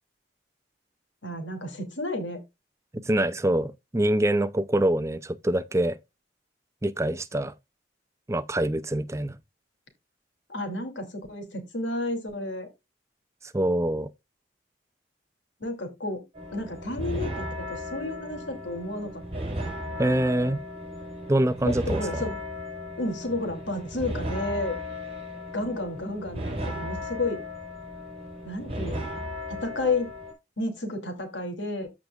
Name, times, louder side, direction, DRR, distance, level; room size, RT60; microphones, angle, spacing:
voice 1, 1.2-2.4 10.5-12.7 15.6-16.2 16.5-19.2 21.6-22.4 23.0-24.8 25.5-27.4 28.4-29.2 29.5-30.1 30.6-31.9, left 2 dB, 75° left, 2.7 m, -31 dB
voice 2, 2.9-6.0 6.8-7.5 8.3-9.4 13.5-14.1 20.0-20.6 21.3-22.2, right 1 dB, 15° right, 0.5 m, -25 dB
sound 1, 16.4-30.3, equal, 30° right, 4.6 m, -35 dB
14.5 x 5.0 x 2.4 m
head